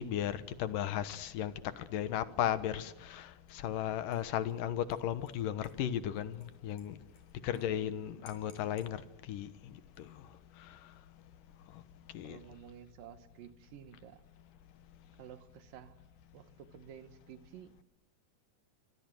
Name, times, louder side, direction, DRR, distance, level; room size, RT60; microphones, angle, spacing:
voice 1, 0.0-6.4 6.6-7.0 7.4-9.0 9.3-9.5 12.1-12.4, left 10 dB, 85° left, 13 dB, 2.9 m, -35 dB
Dishes pots and pans / Liquid, 3.5-3.8 4.1-7.6 7.9-8.0 8.3-8.9 9.8-10.3, left 4 dB, 65° left, 7.3 m, -65 dB
voice 2, 7.4-8.3 12.2-14.2 15.2-16.0 16.3-17.7, right 9 dB, 90° right, 10 dB, 3.2 m, -52 dB
25.5 x 25.5 x 7.8 m, 0.91 s
omnidirectional pair, 3.8 m